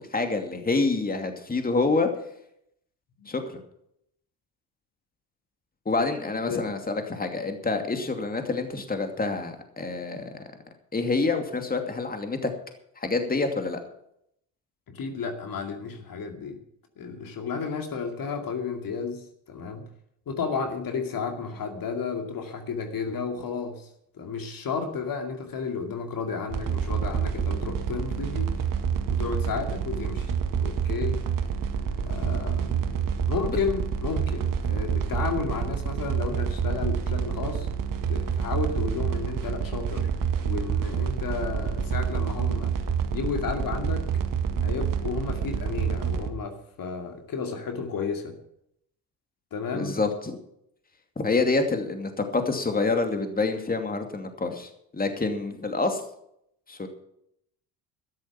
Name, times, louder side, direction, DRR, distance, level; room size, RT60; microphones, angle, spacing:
voice 1, 0.0-2.1 3.3-3.6 5.9-10.3 10.9-12.5 13.0-13.8 33.5-33.6 49.7-50.4 51.2-56.0 56.7-56.9, left 3 dB, 20° left, 6 dB, 2.6 m, -27 dB
voice 2, 14.9-16.6 17.0-19.9 20.3-23.9 24.1-28.6 29.1-31.2 32.0-33.0 33.3-37.7 38.1-40.1 40.4-42.7 43.1-44.0 44.6-48.3 49.5-49.9, left 5 dB, 45° left, 4 dB, 2.4 m, -32 dB
sound 1, 26.5-46.3, right 7 dB, 45° right, 1.9 m, -28 dB
13.5 x 11.0 x 5.9 m, 0.73 s
figure-of-eight pair, 55°, 48 cm